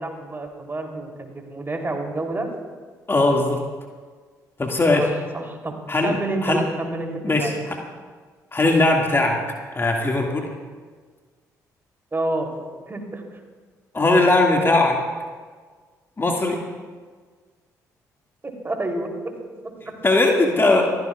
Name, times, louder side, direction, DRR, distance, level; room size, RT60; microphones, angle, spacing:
voice 1, 0.0-2.5 4.9-5.7 6.0-7.6 12.1-12.5 12.9-13.2 18.4-19.3 20.5-20.8, right 2 dB, 25° right, 2 dB, 3.3 m, -29 dB
voice 2, 3.1-3.6 4.6-5.1 5.9-6.2 6.4-6.6 7.2-7.8 8.5-9.4 9.7-10.5 13.9-15.0 16.2-16.7 20.0-20.8, left 2 dB, 25° left, 1 dB, 2.1 m, -19 dB
27.5 x 15.5 x 2.4 m, 1.5 s
figure-of-eight pair, 45°, 9 cm